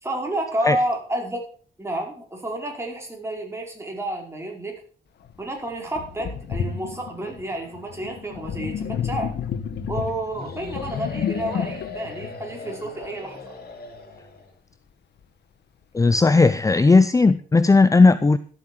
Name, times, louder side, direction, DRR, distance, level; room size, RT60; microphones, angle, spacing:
voice 1, 0.0-1.4 1.8-4.8 5.4-9.3 9.9-13.5, right 1 dB, 15° right, 1 dB, 4.9 m, -30 dB
Sink (filling or washing), 5.3-5.4 6.0-13.3, left 7 dB, 80° left, 1.2 m, -31 dB
sound 1, 10.3-14.5, left 3 dB, 65° left, 4.3 m, -39 dB
voice 2, 15.9-18.4, left 3 dB, 20° left, 15 dB, 0.5 m, -16 dB
12.5 x 8.7 x 6.3 m, 0.44 s
cardioid pair, 90°, 17 cm